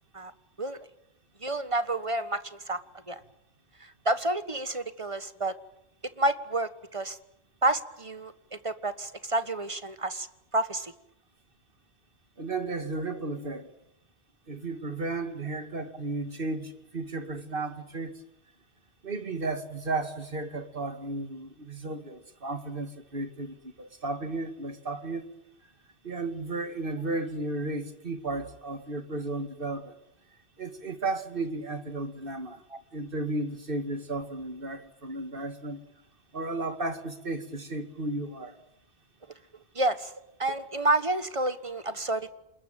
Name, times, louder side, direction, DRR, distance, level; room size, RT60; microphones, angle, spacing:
voice 1, 1.4-2.8 3.1-3.2 3.8-5.5 6.2-7.2 7.6-10.3 10.5-10.9 39.7-40.1 40.4-42.3, right 2 dB, 30° right, 1.4 m, -29 dB
voice 2, 12.4-13.7 14.5-18.1 19.0-25.2 26.0-29.9 30.6-32.6 32.9-35.8 36.3-38.6, right 2 dB, 55° right, 2.3 m, -34 dB
27.5 x 21.0 x 9.1 m
omnidirectional pair, 1.1 m